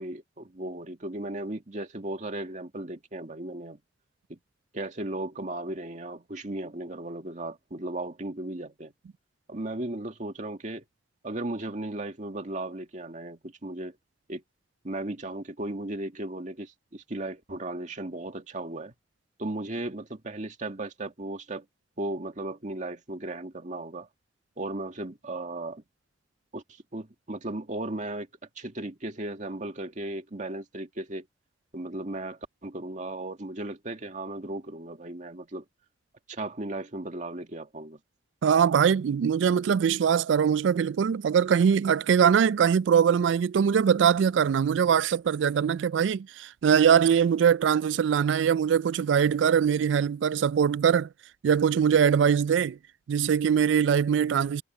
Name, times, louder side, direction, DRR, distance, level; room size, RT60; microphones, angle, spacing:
voice 1, 0.0-3.8 4.3-4.4 4.7-8.9 9.5-10.8 11.2-14.0 14.3-14.4 14.8-18.9 19.4-21.7 22.0-24.1 24.6-25.8 26.5-26.6 26.9-28.3 28.6-31.3 31.7-35.6 36.3-38.0, right 2 dB, 40° right, 2.0 m, -36 dB
voice 2, 38.4-51.1 51.4-52.8 53.1-54.6, right 7 dB, 70° right, 0.3 m, -22 dB
head